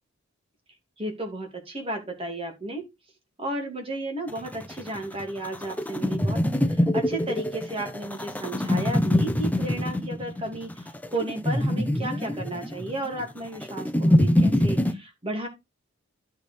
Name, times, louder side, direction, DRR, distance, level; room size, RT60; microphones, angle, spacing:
voice 1, 1.0-2.8 3.4-6.4 6.7-15.5, right 1 dB, 25° right, 3 dB, 2.5 m, -33 dB
sound 1, 4.3-14.9, left 1 dB, 5° left, 0.7 m, -25 dB
12.0 x 4.6 x 5.2 m, 0.22 s
head